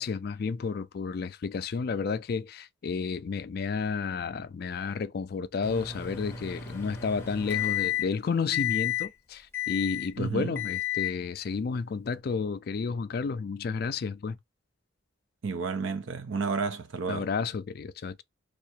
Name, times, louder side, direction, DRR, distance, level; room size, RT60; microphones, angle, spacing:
voice 1, 0.0-14.4 17.1-18.2, left 5 dB, 50° left, 0.3 m, -31 dB
Microwave oven, 5.6-8.2 8.5-9.1 9.5-10.1 10.5-11.2, left 13 dB, 10° left, 0.6 m, -32 dB
voice 2, 10.2-10.6 15.4-17.3, right 4 dB, 70° right, 0.5 m, -31 dB
2.8 x 2.4 x 4.2 m
head